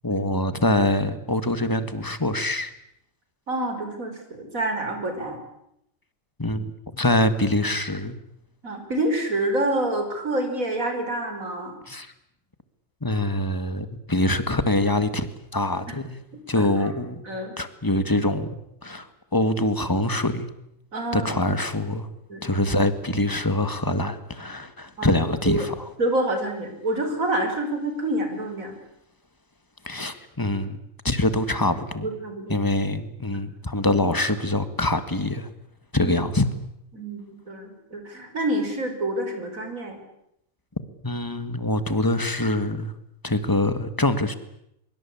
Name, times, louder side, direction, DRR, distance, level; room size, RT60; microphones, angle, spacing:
voice 1, 0.0-2.7 6.4-8.1 11.9-12.1 13.0-16.2 16.5-17.3 17.6-18.5 18.8-20.5 21.1-22.1 22.4-25.9 29.8-30.8 31.0-32.1 32.5-35.5 35.9-36.5 41.0-42.9 43.2-44.3, left 1 dB, 15° left, 11 dB, 1.8 m, -24 dB
voice 2, 3.5-5.4 8.6-11.8 15.9-16.0 16.3-16.9 17.3-17.6 20.9-21.3 22.3-22.5 25.0-25.2 25.5-25.7 26.0-28.8 32.0-32.6 36.0-36.1 36.9-40.0, right 1 dB, 85° right, 5 dB, 5.7 m, -27 dB
24.0 x 23.5 x 8.6 m, 0.78 s
omnidirectional pair, 1.4 m